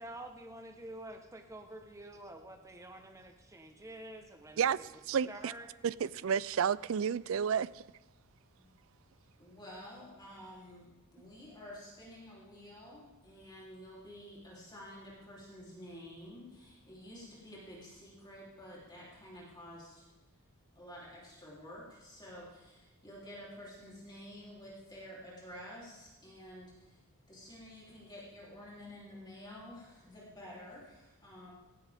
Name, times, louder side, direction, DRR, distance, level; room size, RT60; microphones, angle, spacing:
voice 1, 0.0-4.9 5.3-5.7, right 1 dB, 15° right, 3 dB, 1.1 m, -48 dB
voice 2, 5.1-5.5 5.8-7.8, right 7 dB, 65° right, 19 dB, 0.3 m, -31 dB
voice 3, 9.4-20.1 20.7-27.0 27.3-31.5, equal, 20° left, -6 dB, 3.3 m, -50 dB
17.5 x 14.5 x 3.6 m, 1.1 s
head